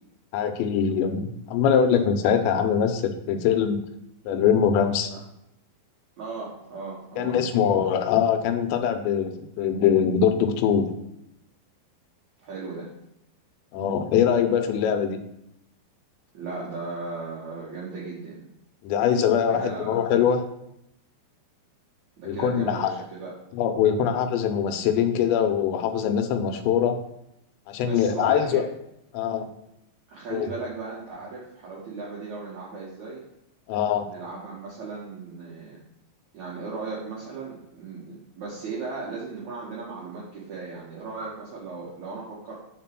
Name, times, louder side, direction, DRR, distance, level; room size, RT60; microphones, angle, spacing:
voice 1, 0.3-3.8 4.3-5.1 7.2-10.9 13.7-15.2 18.8-20.4 22.3-22.9 23.5-27.0 27.7-28.6 29.1-29.5 30.3-30.5 33.7-34.1, left 8 dB, 85° left, 6 dB, 2.9 m, -23 dB
voice 2, 6.2-7.7 12.4-12.9 16.3-18.4 19.5-20.0 22.2-23.3 27.8-28.6 30.1-33.2 34.0-35.8 36.3-42.6, right 4 dB, 60° right, -6 dB, 2.0 m, -36 dB
6.0 x 4.5 x 6.0 m, 0.80 s
omnidirectional pair, 5.3 m